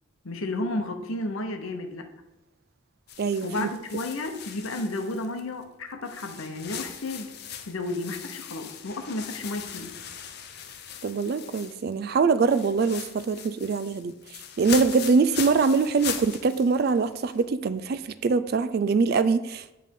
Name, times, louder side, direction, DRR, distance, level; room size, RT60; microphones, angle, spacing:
voice 1, 0.2-2.1 3.4-7.3 7.7-9.9, left 2 dB, 70° left, 6 dB, 0.9 m, -32 dB
sound 1, 3.1-5.6 6.0-12.0 12.3-17.4, left 8 dB, 50° left, 0.6 m, -39 dB
voice 2, 3.2-3.7 11.0-14.1 14.6-19.7, right 4 dB, 45° right, 13 dB, 0.3 m, -23 dB
8.7 x 3.3 x 5.3 m, 0.95 s
head